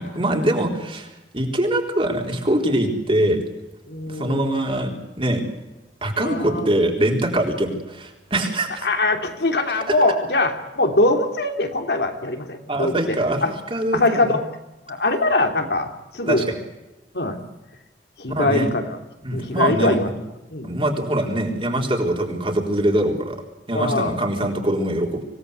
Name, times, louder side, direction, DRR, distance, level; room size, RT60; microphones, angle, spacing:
voice 1, 0.0-3.4 4.1-5.4 6.0-8.9 12.7-13.4 13.7-14.0 14.3-14.4 16.3-16.4 18.3-18.7 19.2-20.0 20.6-23.4 23.7-25.2, right 1 dB, 30° right, 2 dB, 3.9 m, -23 dB
voice 2, 3.9-4.6 6.2-6.7 8.8-13.5 13.9-14.4 14.9-16.5 17.1-17.4 18.2-19.0 19.3-20.1 20.5-20.8 23.7-24.1, left 2 dB, 65° left, 5 dB, 3.0 m, -22 dB
25.5 x 18.0 x 8.2 m, 1.0 s
head